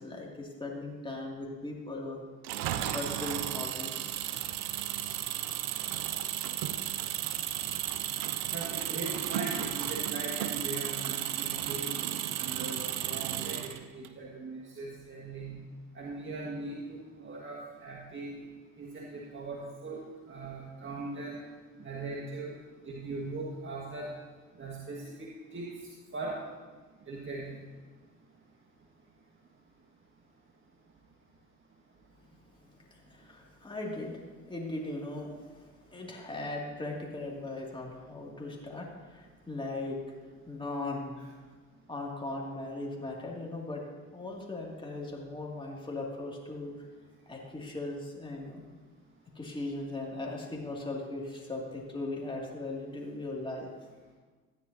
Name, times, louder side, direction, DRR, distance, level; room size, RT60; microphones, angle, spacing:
voice 1, 0.0-2.2 2.9-4.1 32.9-40.0 40.5-41.3 41.9-43.8 44.1-46.7 47.3-48.6 49.4-53.7, left 2 dB, 15° left, -2 dB, 2.4 m, -38 dB
Engine, 2.4-14.1, right 12 dB, 75° right, 0.7 m, -34 dB
voice 2, 8.5-11.9 12.4-15.6 15.9-18.3 18.8-21.4 21.8-24.1 24.6-26.4 27.1-27.6 41.2-41.3, right 2 dB, 35° right, -3 dB, 1.6 m, -40 dB
13.5 x 9.5 x 2.8 m, 1.4 s
hypercardioid pair, 55°, 37 cm